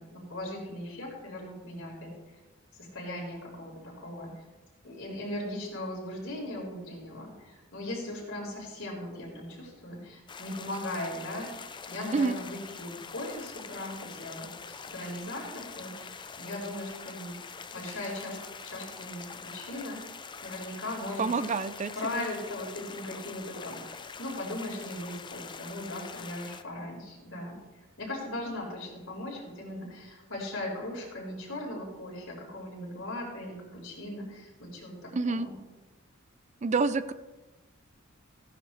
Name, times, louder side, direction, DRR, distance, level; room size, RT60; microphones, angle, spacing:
voice 1, 0.0-2.1 2.8-4.4 4.8-18.4 18.6-21.3 21.9-27.6 28.0-35.6, left 1 dB, 70° left, -2 dB, 4.6 m, -39 dB
sound 1, 10.3-26.6, left 5 dB, 25° left, 0.5 m, -44 dB
voice 2, 21.2-22.2 35.1-35.5 36.6-37.1, right 4 dB, 35° right, 13 dB, 0.4 m, -28 dB
16.0 x 10.0 x 3.2 m, 1.1 s
head